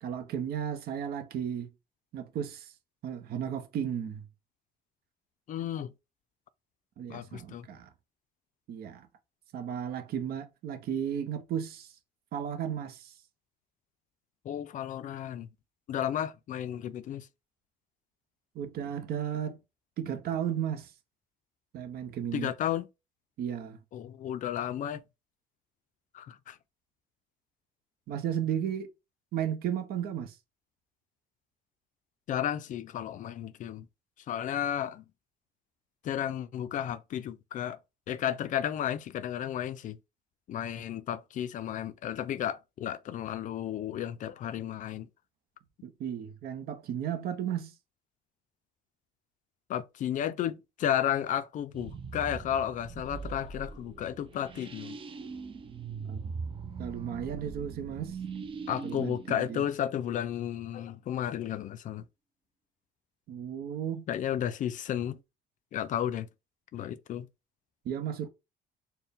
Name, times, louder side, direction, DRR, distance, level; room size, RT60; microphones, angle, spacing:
voice 1, 0.0-1.7 2.1-2.7 3.0-4.3 7.0-7.9 8.7-9.1 9.5-11.9 12.3-13.1 18.5-19.6 20.0-20.9 21.7-22.5 23.4-23.8 28.1-28.9 29.3-30.4 45.8-47.7 56.1-56.2 56.8-58.2 58.8-59.6 63.3-64.1 67.8-68.3, right 9 dB, 65° right, 0.7 m, -34 dB
voice 2, 5.5-5.9 7.1-7.7 14.4-15.5 15.9-17.3 22.3-22.9 23.9-25.0 26.1-26.6 32.3-33.9 34.3-35.0 36.0-37.8 38.1-40.0 40.5-45.1 49.7-55.0 58.7-62.1 64.1-65.2 65.7-66.3 66.7-67.3, left 10 dB, 50° left, 0.4 m, -33 dB
sound 1, 51.7-60.4, right 5 dB, 30° right, 0.5 m, -41 dB
4.3 x 2.1 x 3.4 m
cardioid pair, 110°, 17 cm